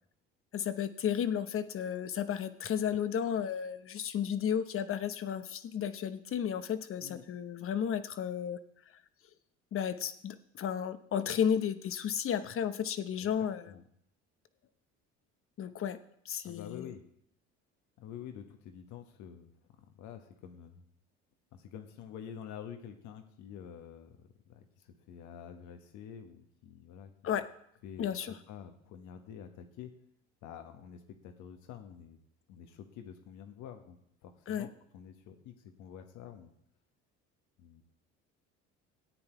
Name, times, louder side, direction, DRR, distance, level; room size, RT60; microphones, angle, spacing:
voice 1, 0.5-8.6 9.7-13.7 15.6-16.0 16.2-16.9 27.2-27.5 28.0-28.3 34.5-34.7, left 8 dB, 45° left, 12 dB, 0.9 m, -33 dB
voice 2, 13.2-13.8 16.4-17.0 18.0-19.5 19.8-20.8 21.5-27.4 27.8-29.9 30.4-32.2 32.5-36.5 37.6-37.8, left 8 dB, 70° left, 7 dB, 1.5 m, -48 dB
13.5 x 8.8 x 4.6 m, 0.73 s
supercardioid pair, 90°, 30 cm